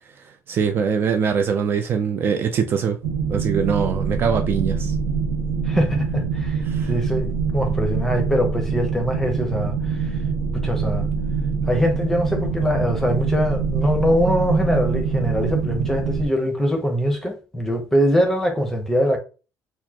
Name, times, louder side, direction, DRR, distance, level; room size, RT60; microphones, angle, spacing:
voice 1, 0.2-3.0 3.3-5.0 6.6-6.9, right 6 dB, 35° right, 0.4 m, -23 dB
sound 1, 3.0-16.3, right 5 dB, 85° right, 0.9 m, -24 dB
voice 2, 5.6-6.6 6.9-10.2 10.5-11.1 11.7-19.2, equal, 5° left, 0.8 m, -22 dB
4.3 x 2.3 x 2.8 m
cardioid pair, 180°, 6 cm